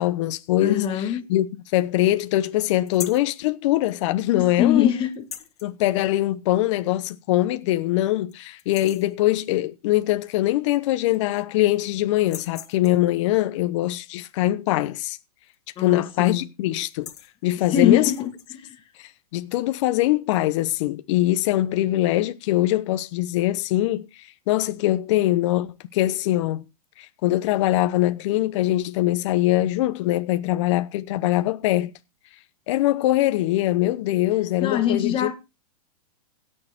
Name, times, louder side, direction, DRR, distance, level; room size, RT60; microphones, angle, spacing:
voice 1, 0.0-1.5 1.7-4.9 5.6-15.2 15.8-17.1 17.4-18.1 19.0-26.6 27.0-31.9 32.7-35.3, left 15 dB, 50° left, 0.9 m, -22 dB
voice 2, 0.6-1.2 4.3-5.1 15.8-16.4 17.7-18.2 18.5-18.7 34.6-35.3, left 10 dB, 25° left, 1.8 m, -23 dB
sound 1, 2.9-3.3 5.1-5.7 7.0-7.1 7.6-7.7 8.1-8.3 8.6-9.1 10.5-10.6 10.9-11.6 12.2-13.1 15.4-15.8 16.0-16.3 16.8-17.3 18.0-18.5, left 10 dB, 75° left, 1.8 m, -40 dB
16.5 x 6.7 x 4.3 m
hypercardioid pair, 140°, 20 cm